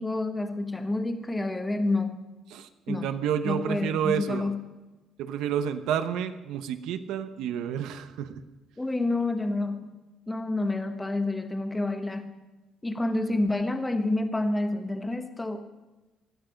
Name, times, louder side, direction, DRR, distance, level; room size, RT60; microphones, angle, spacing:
voice 1, 0.0-2.2 2.9-3.1 3.4-4.6 8.8-9.9 10.3-12.3 12.8-15.6, left 2 dB, 10° left, 7 dB, 1.1 m, -28 dB
voice 2, 2.5-4.5 5.2-8.4, right 9 dB, 90° right, 10 dB, 1.0 m, -30 dB
19.0 x 13.5 x 5.3 m, 1.1 s
cardioid pair, 175°, 0 cm